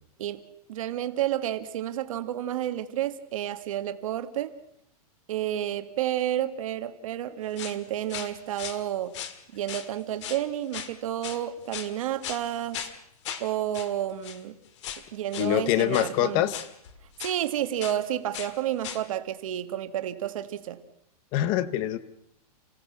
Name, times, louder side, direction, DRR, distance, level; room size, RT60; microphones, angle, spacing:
voice 1, 0.7-4.5 5.3-9.1 9.5-12.8 13.4-14.6 15.1-16.5 17.2-20.8, right 11 dB, 60° right, 9 dB, 1.8 m, -30 dB
sound 1, 7.6-7.8 8.1-8.8 9.1-9.9 10.2-10.4 10.7-11.0 11.2-11.9 12.2-12.5 12.7-13.0 13.3-13.5 13.7-13.9 14.2-14.4 14.8-15.1 15.3-15.5 15.9-16.1 16.5-17.4 17.8-18.0 18.3-18.5 18.8-19.0, left 9 dB, 50° left, 1.9 m, -38 dB
voice 2, 15.4-16.6 21.3-22.0, left 12 dB, 25° left, 15 dB, 0.9 m, -24 dB
29.5 x 16.5 x 6.0 m, 0.76 s
supercardioid pair, 175°, 20 cm